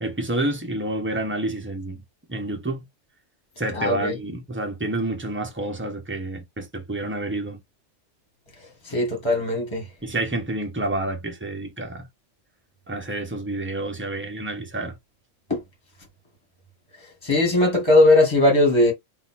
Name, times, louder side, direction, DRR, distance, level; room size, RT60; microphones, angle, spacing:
voice 1, 0.0-2.0 2.3-2.8 3.6-7.6 10.0-12.1 12.9-15.0, right 2 dB, 10° right, 1.0 m, -29 dB
voice 2, 3.7-4.1 8.9-9.8 15.5-15.6 17.2-18.9, left 2 dB, 20° left, 1.7 m, -19 dB
4.0 x 2.7 x 4.1 m
omnidirectional pair, 1.3 m